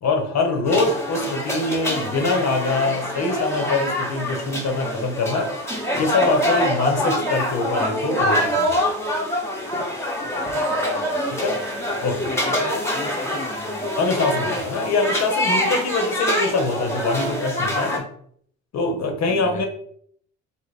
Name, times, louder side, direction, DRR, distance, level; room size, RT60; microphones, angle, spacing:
voice 1, 0.0-5.5 6.0-8.8 11.3-11.6 12.0-12.3 14.0-18.0 18.7-19.7, left 3 dB, 60° left, 3 dB, 0.9 m, -23 dB
sound 1, 0.7-18.0, equal, 10° left, 0.9 m, -25 dB
voice 2, 10.2-14.2 19.3-19.7, left 4 dB, 25° left, 5 dB, 0.5 m, -38 dB
3.3 x 2.0 x 4.1 m, 0.62 s
cardioid pair, 90°, 30 cm